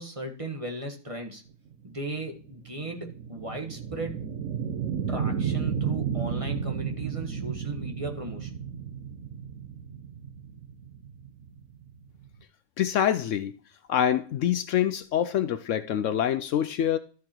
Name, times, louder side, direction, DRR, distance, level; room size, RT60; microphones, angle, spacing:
voice 1, 0.0-1.4 1.8-4.2 5.1-8.5, right 1 dB, 25° right, 1.5 m, -36 dB
sound 1, 1.7-12.4, right 7 dB, 65° right, 1.2 m, -33 dB
voice 2, 12.8-13.6 13.9-17.0, left 10 dB, 70° left, 0.9 m, -25 dB
13.0 x 4.8 x 4.4 m
omnidirectional pair, 1.4 m